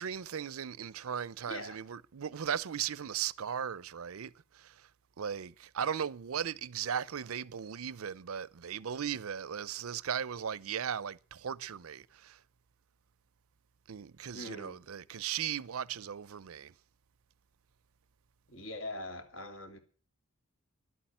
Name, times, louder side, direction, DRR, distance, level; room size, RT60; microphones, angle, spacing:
voice 1, 0.0-4.9 5.2-12.4 13.9-16.7, right 8 dB, 80° right, 0.5 m, -37 dB
voice 2, 1.5-1.8 14.3-14.8 18.5-19.8, left 1 dB, 65° left, 2.8 m, -42 dB
11.5 x 8.6 x 9.2 m
head